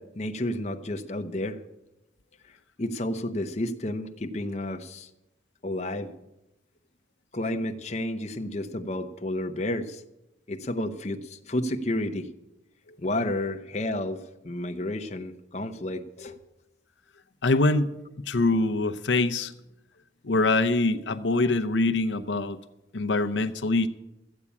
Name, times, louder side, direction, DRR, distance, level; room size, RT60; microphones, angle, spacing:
voice 1, 0.0-1.6 2.5-5.1 5.6-6.1 7.3-10.0 10.5-12.3 13.0-16.4, left 1 dB, 35° left, 5 dB, 0.8 m, -31 dB
voice 2, 17.4-17.9 18.3-19.5 20.2-22.6 22.9-23.9, left 2 dB, 80° left, 8 dB, 0.7 m, -24 dB
13.5 x 8.5 x 8.4 m, 0.93 s
head